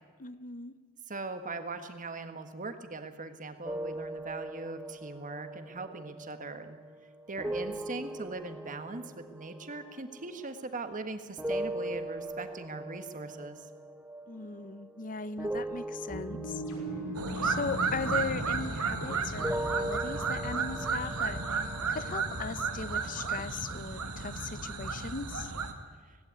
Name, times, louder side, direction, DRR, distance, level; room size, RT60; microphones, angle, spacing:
voice 1, 0.2-0.7 7.7-7.8 14.3-16.6 17.4-21.4 21.9-25.5, left 4 dB, 35° left, 15 dB, 0.8 m, -38 dB
voice 2, 1.1-6.8 7.3-13.6, right 3 dB, 35° right, 8 dB, 1.6 m, -40 dB
sound 1, 3.7-11.0 11.4-19.0 19.4-23.4, right 1 dB, 10° right, 1.0 m, -40 dB
sound 2, 16.1-20.4, right 1 dB, 65° left, 6.0 m, -40 dB
sound 3, 17.1-25.7, right 4 dB, 90° right, 1.9 m, -33 dB
18.0 x 17.0 x 9.7 m, 1.5 s
head